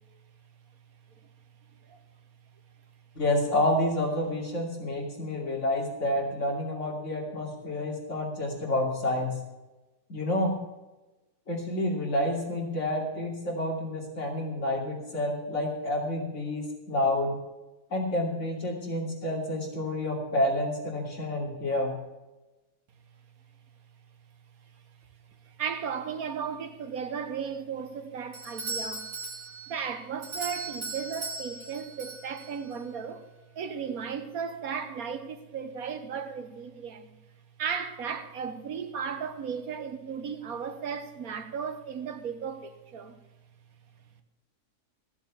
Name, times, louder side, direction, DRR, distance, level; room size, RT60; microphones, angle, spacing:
voice 1, 3.1-9.3 10.1-10.5 11.5-17.3 17.9-21.9, left 1 dB, 50° left, 3.1 m, -29 dB
voice 2, 25.4-29.1 29.7-33.2 33.5-37.1 37.6-43.2, right 6 dB, 70° right, 1.5 m, -35 dB
Doorbell, 28.3-32.8, right 3 dB, 85° right, 3.1 m, -38 dB
13.5 x 7.2 x 6.9 m
omnidirectional pair, 1.6 m